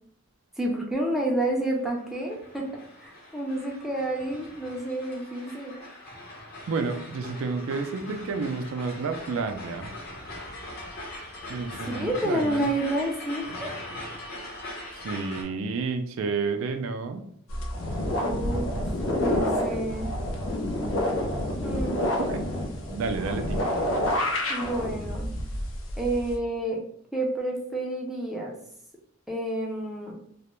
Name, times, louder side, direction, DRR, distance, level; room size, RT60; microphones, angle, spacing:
voice 1, 0.6-2.6 3.0-5.8 11.9-13.7 18.2-18.7 19.1-20.1 21.6-22.0 24.5-25.3 26.0-26.8 27.1-28.6 29.3-30.1, right 1 dB, ahead, -1 dB, 0.4 m, -29 dB
sound 1, 1.7-15.4, left 1 dB, 50° left, 0.9 m, -41 dB
voice 2, 6.7-9.9 11.5-12.7 15.0-17.2 22.2-22.5 22.9-23.6, right 4 dB, 75° right, 7 dB, 0.3 m, -30 dB
sound 2, 17.5-26.4, left 1 dB, 70° left, 0.5 m, -28 dB
2.3 x 2.1 x 2.9 m, 0.65 s
head